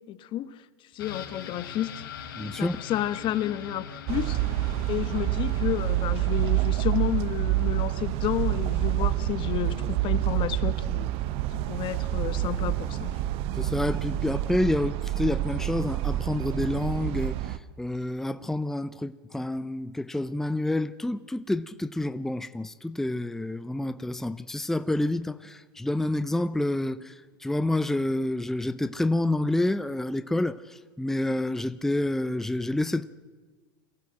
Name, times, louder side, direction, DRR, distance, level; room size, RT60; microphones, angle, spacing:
voice 1, 0.1-0.5 0.9-2.0 2.5-4.4 4.9-11.1 11.5-13.1, left 13 dB, 45° left, 1.2 m, -31 dB
sound 1, 1.0-10.6 10.9-11.0, left 7 dB, 80° left, 3.5 m, -44 dB
voice 2, 2.4-2.8 13.6-27.1 27.4-33.1, left 1 dB, 5° left, 0.6 m, -28 dB
sound 2, 4.1-17.6, right 14 dB, 55° right, 0.9 m, -28 dB
23.5 x 16.5 x 7.6 m
hypercardioid pair, 105°, 12 cm